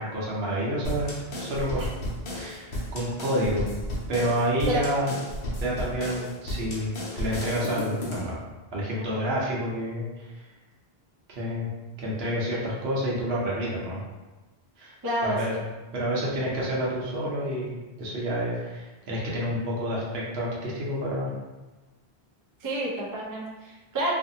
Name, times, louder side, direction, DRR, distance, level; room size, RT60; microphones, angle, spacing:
voice 1, 0.0-1.9 2.3-3.7 4.1-5.1 5.6-8.4 8.7-10.4 11.3-11.7 12.0-14.0 14.8-15.0 15.2-15.5 15.9-21.3, equal, 80° right, -5 dB, 1.0 m, -29 dB
sound 1, 0.8-8.4, left 1 dB, 65° left, 0.9 m, -33 dB
voice 2, 15.0-15.6 22.6-24.1, right 1 dB, 30° right, -4 dB, 0.4 m, -30 dB
2.5 x 2.5 x 2.6 m, 1.1 s
omnidirectional pair, 1.0 m